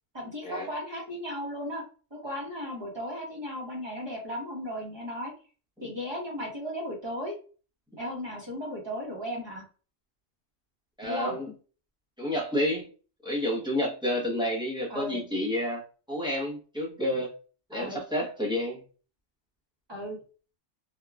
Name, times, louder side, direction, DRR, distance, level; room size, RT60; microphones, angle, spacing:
voice 1, 0.1-1.8 2.1-5.3 5.8-7.4 8.0-9.6 11.0-11.3 14.9-15.2 17.7-18.0 19.9-20.2, equal, 25° right, 1.0 m, -35 dB
voice 2, 11.0-11.5 12.2-12.9 13.2-15.8 16.1-17.3 17.7-18.8, left 1 dB, 5° right, 0.6 m, -30 dB
3.5 x 2.2 x 2.3 m
omnidirectional pair, 1.3 m